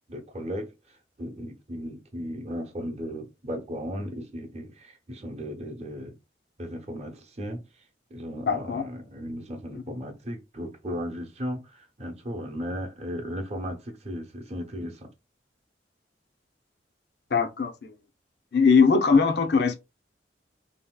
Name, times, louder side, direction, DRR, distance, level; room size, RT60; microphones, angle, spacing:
voice 1, 0.1-0.7 1.2-6.2 6.6-7.6 8.1-15.1, equal, 40° right, 0.8 m, -36 dB
voice 2, 8.4-8.8 17.3-17.9 18.5-19.7, left 5 dB, 65° left, 0.5 m, -21 dB
3.5 x 2.7 x 2.2 m
head